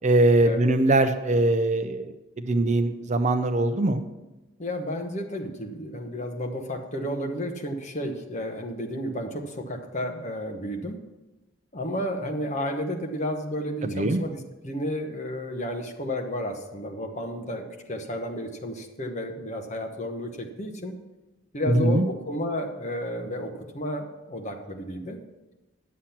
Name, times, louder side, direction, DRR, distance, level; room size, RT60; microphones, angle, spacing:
voice 1, 0.0-4.0 13.8-14.2 21.7-22.0, right 2 dB, 35° right, 8 dB, 0.5 m, -22 dB
voice 2, 4.6-11.0 11.7-20.9 21.5-25.2, equal, 35° left, 3 dB, 1.1 m, -32 dB
10.0 x 7.4 x 5.8 m, 1.1 s
head